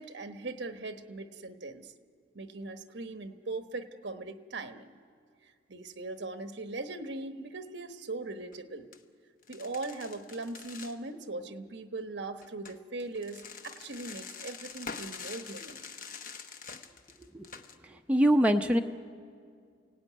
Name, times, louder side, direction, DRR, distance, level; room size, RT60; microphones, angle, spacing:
voice 1, 0.0-1.9 2.3-5.0 5.7-8.9 9.5-15.8, right 2 dB, 65° right, 8 dB, 1.2 m, -40 dB
sound 1, 8.4-8.6 8.9-9.0 9.4-11.0 12.4-17.8, left 5 dB, 45° left, 1.0 m, -45 dB
voice 2, 17.9-18.8, equal, 5° right, 3 dB, 0.8 m, -24 dB
29.0 x 17.5 x 9.4 m, 2.2 s
head